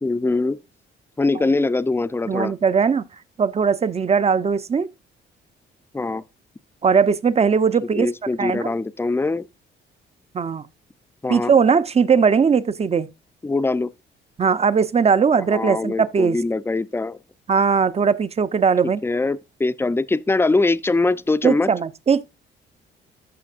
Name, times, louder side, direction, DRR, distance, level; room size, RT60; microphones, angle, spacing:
voice 1, 0.0-0.6 1.2-2.5 5.9-6.2 8.0-9.5 11.2-11.5 13.4-13.9 15.3-17.2 19.0-21.7, left 3 dB, 10° left, 0.5 m, -22 dB
voice 2, 2.3-3.0 3.4-4.9 6.8-8.1 8.4-8.7 10.3-10.6 11.3-13.1 14.4-16.4 17.5-19.0 21.4-22.2, right 6 dB, 30° right, 0.7 m, -19 dB
13.5 x 5.7 x 2.5 m
cardioid pair, 90°, 20 cm